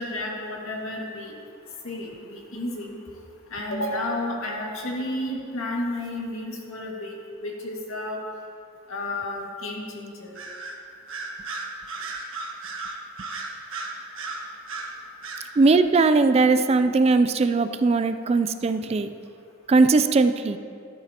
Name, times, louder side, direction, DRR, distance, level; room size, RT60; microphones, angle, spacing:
voice 1, 0.0-1.3 1.8-2.9 3.5-7.1 7.4-8.2 8.9-10.3 17.9-18.0, left 1 dB, 80° left, -1 dB, 1.9 m, -31 dB
Bird vocalization bird call bird song, 10.3-10.8 11.1-14.9 15.2-15.5, right 3 dB, 70° right, 1.3 m, -34 dB
voice 2, 15.6-19.1 19.7-20.6, right 3 dB, 30° right, 10 dB, 0.3 m, -19 dB
14.0 x 12.0 x 2.9 m, 2.5 s
head